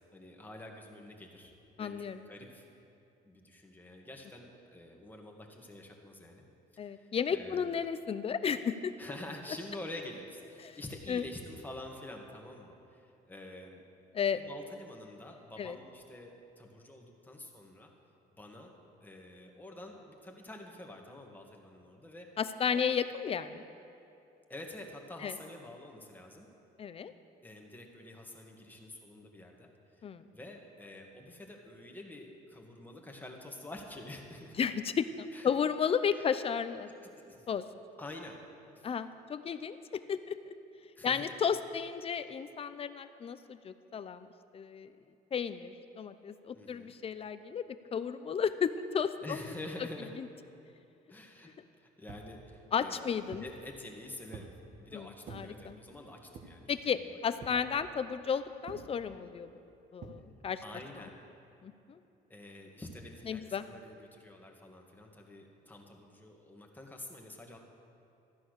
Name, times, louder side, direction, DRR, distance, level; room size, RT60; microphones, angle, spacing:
voice 1, 0.1-2.7 3.2-6.4 6.7-7.7 9.0-13.8 14.3-17.9 18.4-22.3 22.7-22.8 24.5-26.5 27.4-29.7 30.0-30.1 30.3-34.6 35.3-35.5 36.1-36.3 37.3-37.5 38.0-38.4 38.8-38.9 41.0-41.4 46.5-46.9 49.2-50.1 51.1-51.5 51.8-53.1 53.4-54.5 54.8-57.0 60.6-61.2 62.3-67.6, left 1 dB, 10° left, 1 dB, 1.9 m, -47 dB
voice 2, 1.8-2.3 6.8-8.9 10.6-10.8 11.1-11.2 14.1-14.4 15.6-15.8 22.4-23.6 25.2-25.4 26.8-27.1 30.0-30.2 34.6-36.9 37.5-37.6 38.8-40.5 41.0-44.3 44.5-44.9 45.3-49.4 50.2-50.3 52.7-53.4 54.9-55.8 56.7-59.5 59.9-60.6 61.6-62.0 63.3-63.7, left 7 dB, 35° left, 11 dB, 0.7 m, -33 dB
sound 1, 52.1-52.3 52.9-53.6 54.3-54.6 55.2-55.5 56.3-56.7 57.4-57.7 58.7-58.9 60.0-60.2, right 4 dB, 45° right, 1.6 m, -48 dB
14.0 x 9.9 x 6.5 m, 2.8 s
cardioid pair, 110°, 17 cm